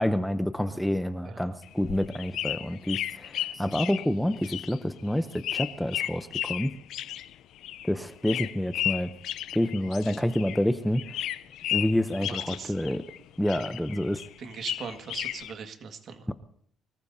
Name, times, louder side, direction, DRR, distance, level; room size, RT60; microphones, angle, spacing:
voice 1, 0.0-6.7 7.9-9.1 9.5-11.0 11.7-13.0 13.4-14.2 16.3-16.4, left 1 dB, ahead, 9 dB, 0.7 m, -28 dB
sound 1, 1.6-10.7 10.9-13.2 13.5-15.5, left 12 dB, 75° left, 0.5 m, -34 dB
voice 2, 12.2-12.7 14.4-16.3, right 6 dB, 50° right, 5 dB, 1.8 m, -40 dB
24.0 x 21.5 x 2.8 m, 0.66 s
cardioid pair, 140°, 0 cm